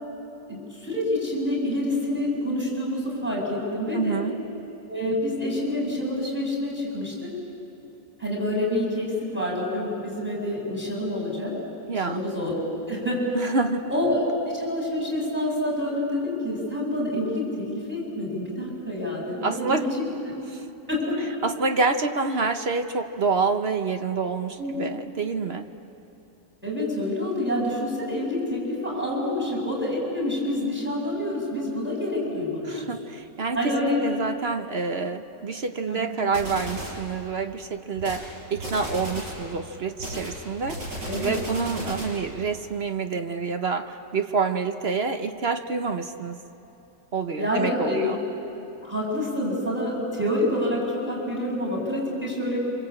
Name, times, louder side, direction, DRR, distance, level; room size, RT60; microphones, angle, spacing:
voice 1, 0.5-4.2 4.9-7.1 8.2-11.5 11.9-12.5 12.9-13.2 13.9-14.2 14.5-19.9 20.9-21.2 24.6-24.7 26.6-32.9 33.5-34.0 35.8-36.1 41.0-41.4 47.4-48.1 48.8-52.6, left 1 dB, 5° right, -4 dB, 7.9 m, -27 dB
voice 2, 3.9-4.4 11.9-12.2 13.3-13.9 19.4-19.9 20.5-20.7 21.4-25.7 32.6-46.4 47.1-48.2, right 4 dB, 45° right, 7 dB, 0.9 m, -27 dB
sound 1, 36.3-37.0 38.0-38.3 38.6-39.4 40.0-42.2, right 1 dB, 80° right, 7.4 m, -34 dB
27.5 x 25.5 x 8.5 m, 3.0 s
omnidirectional pair, 1.9 m